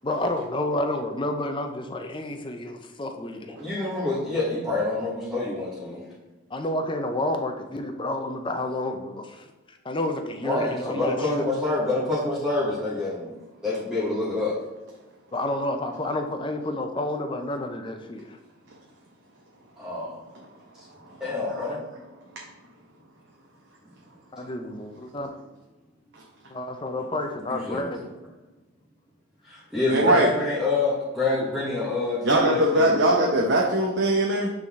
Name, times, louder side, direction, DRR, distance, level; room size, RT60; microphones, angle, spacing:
voice 1, 0.0-3.5 6.5-11.5 15.3-18.4 24.3-25.3 26.5-28.0, left 1 dB, 25° left, 5 dB, 0.5 m, -30 dB
voice 2, 3.6-6.0 10.4-13.3 13.6-14.5 19.8-20.2 21.2-21.8 27.5-27.9 29.4-33.0, left 2 dB, 5° right, -10 dB, 1.3 m, -27 dB
voice 3, 29.9-30.3 32.2-34.5, right 1 dB, 55° right, -1 dB, 0.8 m, -21 dB
8.0 x 3.8 x 3.6 m, 1.1 s
head